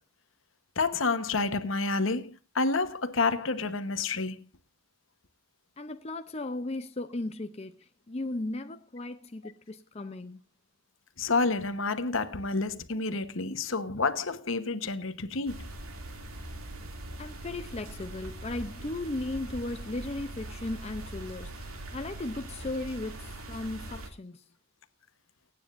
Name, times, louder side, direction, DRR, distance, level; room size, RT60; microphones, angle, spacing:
voice 1, 0.8-4.4 11.2-15.7, left 3 dB, 65° left, 1.1 m, -29 dB
voice 2, 5.8-7.7 8.1-10.4 17.2-24.4, left 2 dB, 30° left, 0.6 m, -36 dB
sound 1, 15.5-24.1, right 1 dB, 85° right, 2.6 m, -42 dB
23.5 x 9.6 x 2.6 m
head